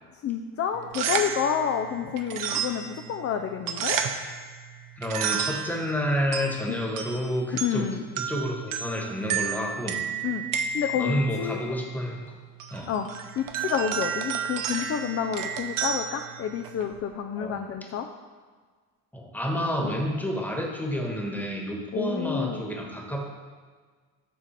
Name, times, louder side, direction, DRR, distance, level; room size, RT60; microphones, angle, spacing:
voice 1, 0.1-4.0 6.7-6.8 7.6-8.0 10.2-10.5 10.7-11.6 12.9-13.1 13.4-18.1 19.8-19.9 21.9-22.6, left 8 dB, 35° left, 5 dB, 0.4 m, -29 dB
sound 1, 0.7-17.0, right 7 dB, 55° right, 0.7 m, -32 dB
voice 2, 5.0-7.9 8.3-10.0 11.0-12.4 12.7-12.9 17.4-17.6 19.1-23.3, equal, 5° left, 0 dB, 1.3 m, -29 dB
5.9 x 3.8 x 5.8 m, 1.5 s
supercardioid pair, 75°, 40 cm